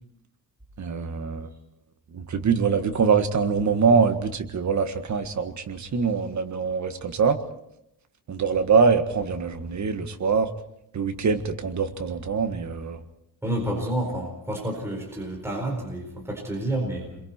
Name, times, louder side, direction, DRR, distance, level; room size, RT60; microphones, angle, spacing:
voice 1, 0.8-1.5 2.1-7.4 8.3-10.5 10.9-13.0, right 5 dB, 40° right, 7 dB, 1.7 m, -24 dB
voice 2, 13.4-17.2, right 1 dB, 5° right, 0 dB, 4.5 m, -29 dB
29.5 x 23.0 x 4.4 m, 0.80 s
wide cardioid pair, 170°, 42 cm